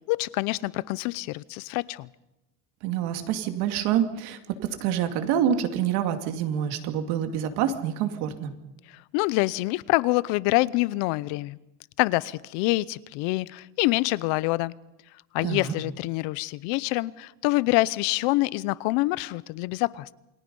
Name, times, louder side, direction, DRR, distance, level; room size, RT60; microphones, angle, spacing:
voice 1, 0.1-2.1 9.1-11.6 12.0-14.7 15.3-20.1, left 21 dB, 80° left, 20 dB, 0.8 m, -26 dB
voice 2, 2.8-8.5 15.4-15.7, right 9 dB, 70° right, 7 dB, 2.6 m, -27 dB
28.5 x 22.0 x 5.5 m, 0.93 s
cardioid pair, 165°, 41 cm